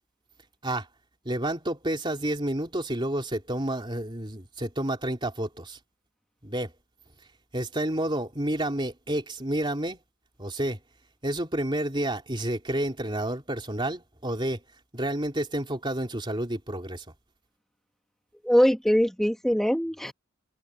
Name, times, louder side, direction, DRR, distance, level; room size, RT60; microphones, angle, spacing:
voice 1, 1.2-5.8 6.4-6.7 7.5-10.0 10.4-10.8 11.2-14.6 14.9-17.0, right 1 dB, 20° right, 3.2 m, -30 dB
voice 2, 18.4-20.1, equal, ahead, 1.3 m, -22 dB
head